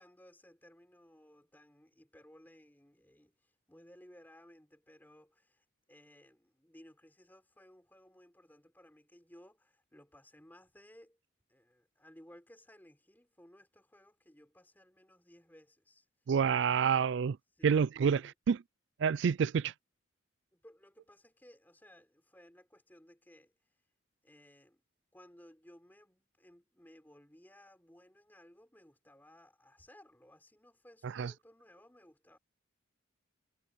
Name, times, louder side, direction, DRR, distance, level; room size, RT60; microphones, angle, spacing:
voice 1, 0.0-11.2 11.5-16.1 17.5-18.3 20.5-23.5 24.2-24.8 25.1-32.4, equal, 10° left, 3.7 m, -60 dB
voice 2, 16.3-17.4 17.6-18.2 18.5-18.6 19.0-19.7 31.0-31.3, right 6 dB, 60° right, 0.3 m, -28 dB
head